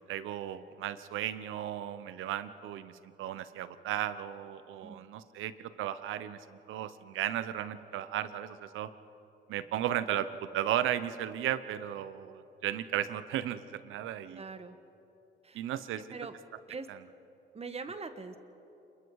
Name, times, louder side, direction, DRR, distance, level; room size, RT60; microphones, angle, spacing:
voice 1, 0.1-8.9 9.5-14.4 15.5-16.1 16.9-17.0, right 11 dB, 90° right, 13 dB, 0.9 m, -35 dB
voice 2, 14.3-14.8 15.4-15.6 15.9-16.3 16.7-16.9 17.5-18.4, right 4 dB, 30° right, 9 dB, 1.4 m, -42 dB
27.5 x 21.5 x 4.8 m, 2.9 s
cardioid pair, 90°, 20 cm